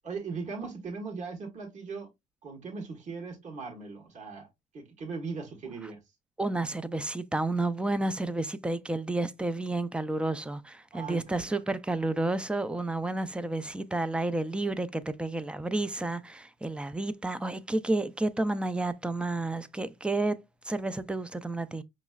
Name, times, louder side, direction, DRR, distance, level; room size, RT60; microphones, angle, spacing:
voice 1, 0.0-2.1 2.4-4.5 4.7-6.0 10.9-11.6, right 4 dB, 45° right, 1.5 m, -39 dB
voice 2, 6.4-20.4 20.6-21.8, right 2 dB, 5° right, 0.4 m, -31 dB
5.4 x 3.0 x 2.4 m
cardioid pair, 110°, 17 cm